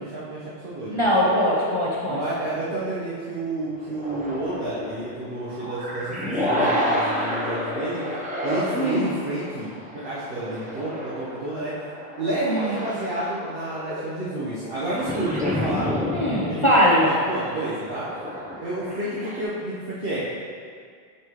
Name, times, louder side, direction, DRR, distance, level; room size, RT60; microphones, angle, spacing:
voice 1, 0.0-1.3 2.1-8.0 8.4-9.7 9.9-11.7 12.2-15.9 16.3-16.6 17.0-18.1 18.6-20.2, right 1 dB, 65° right, -11 dB, 1.4 m, -30 dB
voice 2, 0.9-2.2 8.7-9.2 12.4-12.8 16.1-17.1, equal, 30° left, -6 dB, 0.8 m, -21 dB
sound 1, 1.2-2.9 3.7-19.4, equal, 10° right, 0.8 m, -31 dB
8.3 x 5.3 x 3.2 m, 2.1 s
omnidirectional pair, 1.1 m